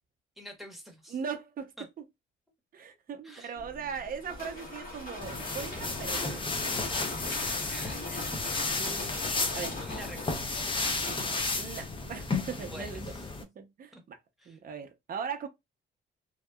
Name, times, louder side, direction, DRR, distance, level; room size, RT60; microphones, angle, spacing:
voice 1, 0.4-1.2 1.8-1.9 3.2-3.7 7.7-8.7 9.8-11.3 12.6-13.3 13.9-14.0 14.4-14.6, equal, ahead, 1.1 m, -48 dB
voice 2, 1.1-1.7 2.7-6.7 8.7-9.3 9.5-9.7 11.6-13.1 13.5-14.2 14.5-15.5, right 6 dB, 45° right, 0.6 m, -39 dB
sound 1, 3.6-12.3, left 2 dB, 45° left, 1.3 m, -41 dB
sound 2, 5.2-13.4, left 3 dB, 25° left, 0.6 m, -33 dB
2.7 x 2.2 x 2.2 m
cardioid pair, 90°, 20 cm